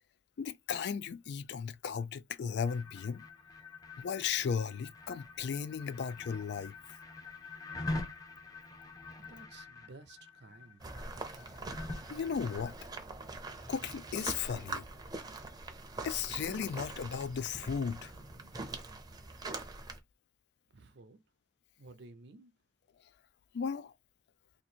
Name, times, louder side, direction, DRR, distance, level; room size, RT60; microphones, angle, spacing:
voice 1, 0.4-3.2 4.0-6.7 12.1-12.7 13.7-14.9 16.0-18.1 23.5-23.9, left 6 dB, 60° left, 0.3 m, -35 dB
sound 1, 2.6-12.7, left 2 dB, 20° left, 0.6 m, -45 dB
voice 2, 9.2-10.8 20.7-21.2 21.8-22.5, right 3 dB, 60° right, 0.6 m, -54 dB
sound 2, 10.8-20.0, right 2 dB, 20° right, 0.6 m, -43 dB
2.9 x 2.5 x 4.2 m
head